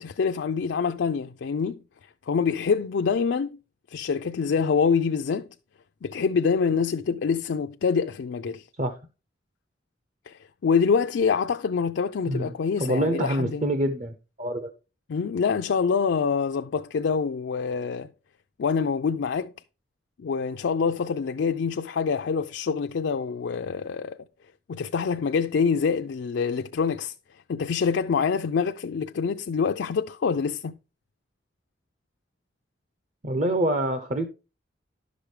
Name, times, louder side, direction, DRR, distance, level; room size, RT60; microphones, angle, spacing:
voice 1, 0.0-1.8 2.3-3.6 3.9-5.5 6.0-8.7 10.3-13.7 15.1-18.1 18.6-19.5 20.2-24.2 24.7-27.1 27.5-30.7, left 5 dB, 85° left, 0.4 m, -25 dB
voice 2, 12.8-14.7 33.2-34.3, right 1 dB, 40° right, 0.7 m, -26 dB
11.0 x 6.1 x 3.2 m
head